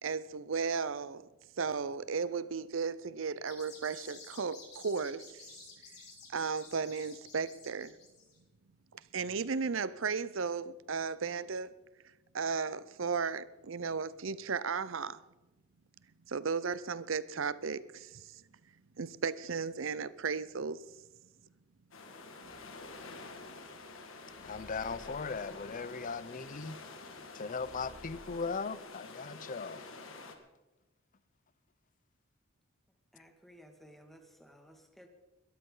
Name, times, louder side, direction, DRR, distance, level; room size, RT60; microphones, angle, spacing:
voice 1, 0.0-1.2 1.6-5.5 6.3-8.0 8.9-11.7 12.3-15.2 16.3-18.4 19.0-20.8, right 5 dB, 70° right, 0.7 m, -35 dB
sound 1, 3.4-8.4, left 4 dB, 55° left, 7.1 m, -52 dB
sound 2, 21.9-30.4, left 3 dB, 75° left, 2.0 m, -48 dB
sound 3, 22.5-23.9 24.3-27.2 27.5-28.4, equal, 45° right, 2.9 m, -57 dB
voice 2, 24.4-26.8 27.3-29.8, left 4 dB, 40° left, 0.6 m, -38 dB
voice 3, 33.1-35.1, equal, ahead, 2.0 m, -57 dB
21.5 x 13.5 x 3.9 m
head